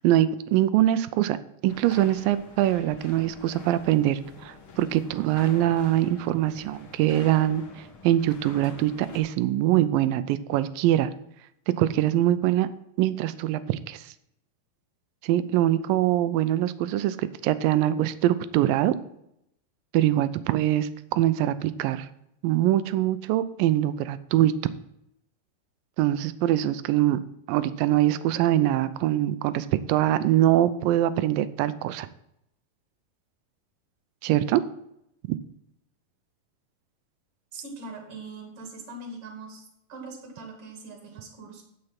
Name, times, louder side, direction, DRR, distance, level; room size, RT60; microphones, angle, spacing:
voice 1, 0.0-1.4 1.6-7.6 8.0-11.1 11.7-12.7 13.0-14.1 15.2-19.0 19.9-22.1 22.4-24.7 26.0-27.2 27.5-32.1 34.2-34.6 35.3-35.4, right 13 dB, 80° right, 14 dB, 2.3 m, -23 dB
sound 1, 1.7-9.2, left 4 dB, 55° left, 1.5 m, -46 dB
voice 2, 37.5-41.6, right 3 dB, 45° right, 2 dB, 2.9 m, -42 dB
9.7 x 6.9 x 5.9 m, 0.78 s
omnidirectional pair, 4.2 m